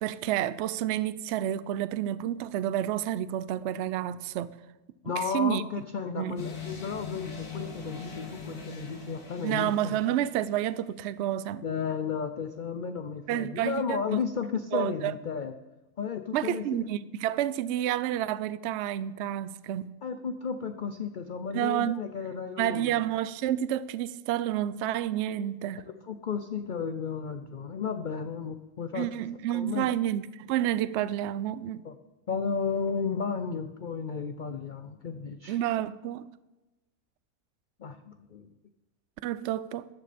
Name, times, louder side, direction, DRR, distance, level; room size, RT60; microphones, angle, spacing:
voice 1, 0.0-4.6 5.0-5.6 6.1-6.3 9.4-11.6 13.3-14.2 14.7-15.1 16.3-19.9 21.5-22.0 22.6-25.9 28.9-31.8 35.5-36.3 39.2-39.9, right 12 dB, 65° right, 0.7 m, -29 dB
voice 2, 5.0-10.0 11.6-15.5 16.0-16.9 20.0-23.0 26.1-29.1 29.5-29.9 31.8-31.9 32.3-35.6 37.8-38.5, left 6 dB, 65° left, 0.4 m, -33 dB
sound 1, 6.4-10.7, left 4 dB, 85° left, 2.7 m, -41 dB
14.0 x 10.5 x 4.2 m
omnidirectional pair, 1.5 m